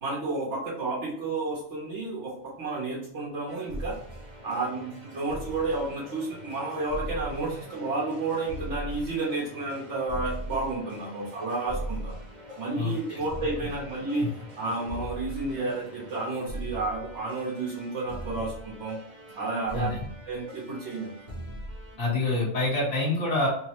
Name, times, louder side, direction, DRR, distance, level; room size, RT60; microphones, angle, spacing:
voice 1, 0.0-2.3 2.6-3.9 4.4-12.2 12.6-19.0 19.3-20.0 20.3-21.1 21.5-21.6, right 3 dB, 80° right, -6 dB, 1.2 m, -31 dB
sound 1, 3.5-22.0, right 1 dB, 45° right, 0.7 m, -40 dB
voice 2, 12.8-13.2 19.7-20.1 22.0-23.5, left 2 dB, 35° left, -7 dB, 1.1 m, -27 dB
3.1 x 2.0 x 2.9 m, 0.72 s
omnidirectional pair, 1.2 m